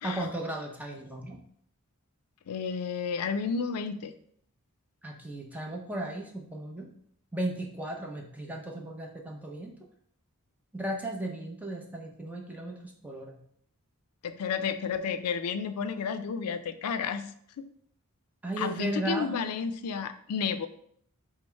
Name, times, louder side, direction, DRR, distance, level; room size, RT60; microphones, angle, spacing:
voice 1, 0.0-1.4 5.0-6.9 7.3-9.7 10.7-13.4 18.4-19.3, right 1 dB, 5° right, 1 dB, 0.6 m, -35 dB
voice 2, 2.5-4.1 14.2-17.3 17.6-17.7 18.6-20.7, left 6 dB, 85° left, 11 dB, 0.4 m, -31 dB
5.2 x 2.0 x 4.4 m, 0.65 s
head